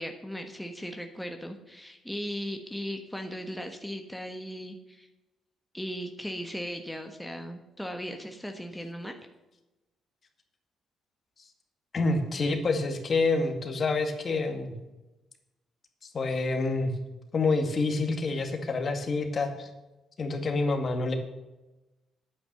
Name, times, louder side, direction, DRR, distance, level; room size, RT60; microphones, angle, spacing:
voice 1, 0.0-5.1 5.7-9.2, equal, 5° left, 4 dB, 1.2 m, -37 dB
voice 2, 11.9-14.7 16.0-16.9 17.3-19.7 20.2-21.2, left 3 dB, 45° left, 5 dB, 2.0 m, -27 dB
9.6 x 9.2 x 6.9 m, 1.0 s
cardioid pair, 90°, 0 cm